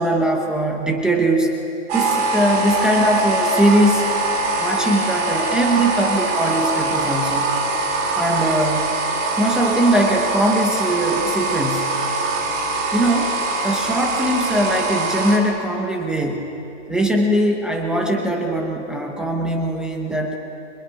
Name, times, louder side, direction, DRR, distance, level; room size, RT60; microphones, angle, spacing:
voice 1, 0.0-1.5 1.9-4.1 4.6-7.6 8.2-8.9 9.4-12.0 12.9-16.5 16.9-20.3, right 1 dB, ahead, 0 dB, 0.7 m, -21 dB
sound 1, 1.9-15.4, right 2 dB, 20° right, 2.9 m, -23 dB
26.0 x 21.5 x 10.0 m, 3.0 s
hypercardioid pair, 170°, 37 cm